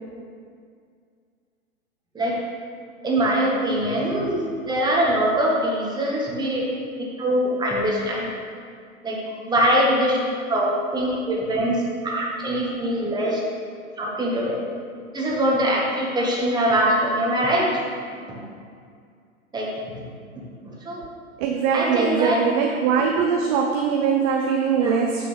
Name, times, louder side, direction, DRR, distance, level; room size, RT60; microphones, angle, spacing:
voice 1, 3.0-6.6 7.0-8.3 9.0-10.2 10.5-13.4 14.0-14.6 15.1-17.8 18.3-18.4 19.5-19.7 20.7-21.0 21.7-22.4 24.8-24.9, right 1 dB, 10° right, -3 dB, 1.6 m, -23 dB
voice 2, 21.4-25.2, right 6 dB, 25° right, 2 dB, 0.6 m, -22 dB
9.1 x 8.2 x 3.4 m, 2.2 s
hypercardioid pair, 115°, 43 cm